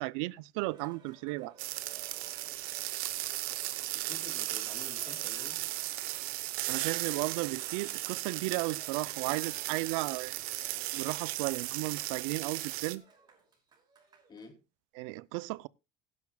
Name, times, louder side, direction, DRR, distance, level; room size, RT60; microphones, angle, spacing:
voice 1, 0.0-1.5 6.7-10.4 10.9-13.0 15.0-15.7, right 22 dB, 90° right, 0.5 m, -34 dB
Cheering, 0.6-14.5, right 4 dB, 30° right, 5.6 m, -59 dB
sound 1, 1.6-13.0, right 17 dB, 70° right, 0.9 m, -36 dB
voice 2, 3.9-5.6 14.3-14.6, left 3 dB, 25° left, 2.8 m, -49 dB
17.5 x 10.5 x 2.3 m
cardioid pair, 125°, 16 cm